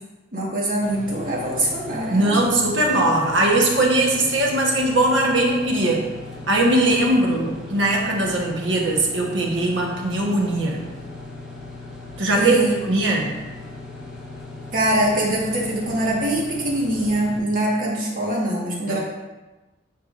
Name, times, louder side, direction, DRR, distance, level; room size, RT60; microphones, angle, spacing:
voice 1, 0.3-2.6 12.3-12.8 14.7-19.0, right 1 dB, 45° right, -4 dB, 1.6 m, -23 dB
sound 1, 0.8-17.4, left 2 dB, 5° right, 1.1 m, -38 dB
voice 2, 2.1-6.0 6.5-10.8 12.2-13.3 18.9-19.0, right 2 dB, 75° right, -1 dB, 1.3 m, -20 dB
9.6 x 4.7 x 2.6 m, 1.1 s
head